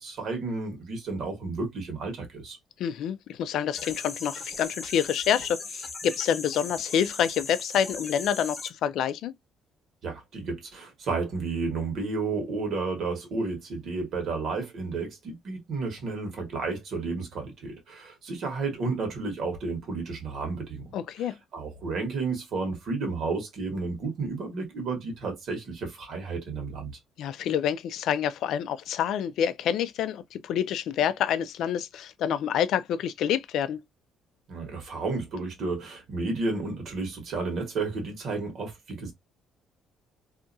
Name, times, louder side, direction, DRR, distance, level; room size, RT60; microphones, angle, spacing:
voice 1, 0.0-2.6 10.0-20.9 21.5-26.9 34.5-39.1, right 3 dB, 60° right, 1.4 m, -32 dB
voice 2, 2.8-9.3 20.9-21.4 27.2-33.8, left 9 dB, 75° left, 0.3 m, -27 dB
sound 1, 3.7-8.7, left 4 dB, 30° left, 1.0 m, -38 dB
2.7 x 2.3 x 2.6 m
cardioid pair, 115°, 0 cm